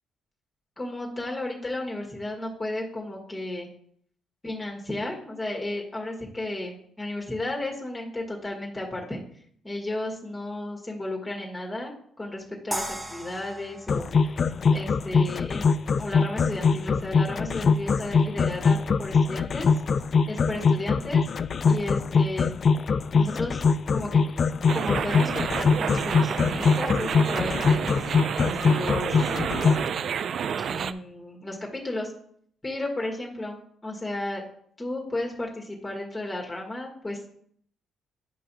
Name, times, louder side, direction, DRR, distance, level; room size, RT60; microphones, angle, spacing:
voice 1, 0.8-3.7 4.4-9.2 9.6-11.9 12.2-14.3 14.7-15.6 16.0-19.7 20.3-21.2 21.7-22.5 23.1-23.6 23.9-24.2 24.7-28.1 28.4-29.3 30.5-32.1 32.6-33.6 33.8-34.4 34.8-37.3, left 1 dB, 15° left, -1 dB, 1.8 m, -33 dB
sound 1, 12.7-15.8, right 1 dB, 10° right, 1.2 m, -37 dB
sound 2, 13.9-29.9, left 5 dB, 45° left, 0.3 m, -22 dB
sound 3, 24.7-30.9, right 7 dB, 60° right, 0.4 m, -30 dB
10.0 x 5.5 x 2.8 m, 0.63 s
cardioid pair, 90°, 0 cm